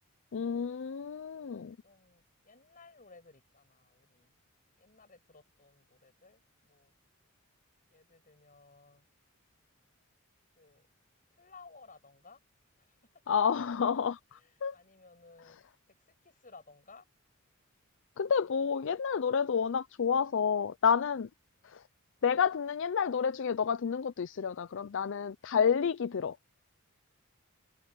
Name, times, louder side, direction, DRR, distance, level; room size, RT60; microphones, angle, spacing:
voice 1, 0.3-1.8 13.3-14.8 18.2-21.3 21.6-21.8 22.2-26.4, left 6 dB, 60° left, 0.5 m, -30 dB
voice 2, 1.3-4.3 4.8-6.9 7.9-9.0 10.6-10.9 11.4-12.4 12.8-13.2 14.3-15.6 15.9-17.1 21.6-21.8, left 4 dB, 40° left, 6.1 m, -58 dB
head